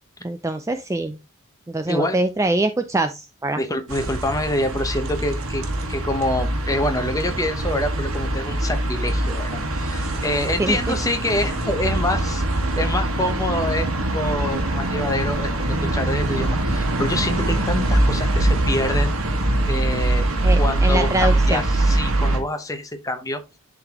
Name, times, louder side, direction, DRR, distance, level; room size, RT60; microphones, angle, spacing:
voice 1, 0.2-1.2 1.7-3.6 10.6-10.8 20.4-21.6, right 2 dB, 15° right, 0.4 m, -23 dB
voice 2, 3.6-12.4 12.8-13.9 14.1-19.2 19.7-20.3 20.6-23.4, left 1 dB, 15° left, 0.9 m, -26 dB
sound 1, 3.9-22.4, right 1 dB, 70° right, 1.6 m, -23 dB
11.0 x 3.9 x 3.0 m
head